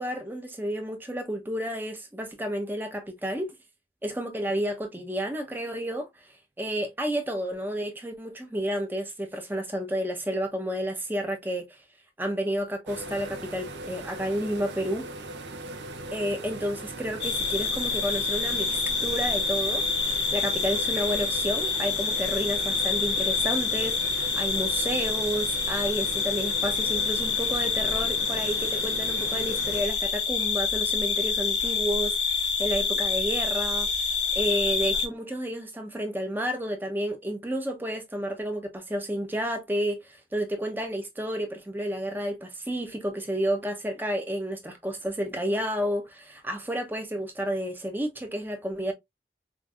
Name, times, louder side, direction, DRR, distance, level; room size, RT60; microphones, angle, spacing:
voice 1, 0.0-3.5 4.0-6.1 6.6-11.8 12.2-15.1 16.1-33.9 34.3-48.9, equal, 10° right, 0.8 m, -31 dB
sound 1, 12.9-29.8, right 2 dB, 80° right, 0.7 m, -39 dB
sound 2, 17.2-35.1, left 5 dB, 85° left, 0.9 m, -27 dB
5.0 x 2.7 x 2.4 m
head